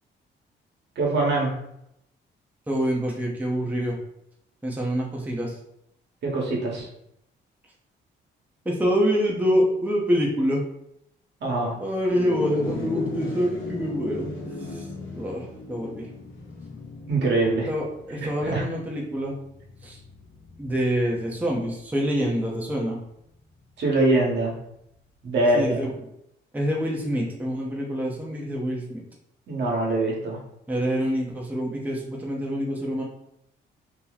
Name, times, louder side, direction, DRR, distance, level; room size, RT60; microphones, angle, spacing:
voice 1, 1.0-1.5 6.2-6.9 11.4-11.8 17.1-17.7 18.1-18.6 23.8-24.5 25.2-25.8 29.5-30.4, right 2 dB, 60° right, -2 dB, 1.1 m, -23 dB
voice 2, 2.7-4.0 4.6-5.6 8.7-10.6 11.8-14.3 14.7-14.8 15.1-16.1 17.7-19.3 19.8-20.0 20.6-23.0 25.5-25.9 26.5-29.0 30.7-33.0, equal, 10° right, -2 dB, 0.6 m, -26 dB
sound 1, 12.1-21.7, left 3 dB, 70° left, 1.0 m, -37 dB
2.8 x 2.0 x 3.9 m, 0.78 s
cardioid pair, 90°, 20 cm